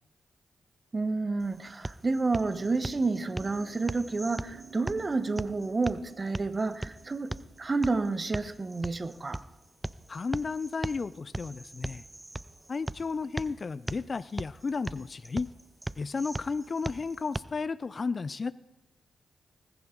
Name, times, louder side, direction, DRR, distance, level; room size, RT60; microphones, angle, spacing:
voice 1, 0.9-7.3 7.6-9.4, right 3 dB, 40° right, 13 dB, 1.0 m, -30 dB
sound 1, 1.4-17.4, right 1 dB, 20° right, 0.5 m, -40 dB
sound 2, 2.3-7.8, right 5 dB, 75° right, 2.1 m, -53 dB
voice 2, 10.1-12.0 12.7-15.5 16.0-18.5, left 4 dB, 45° left, 18 dB, 0.4 m, -33 dB
20.0 x 11.0 x 3.8 m, 1.0 s
hypercardioid pair, 40°, 0 cm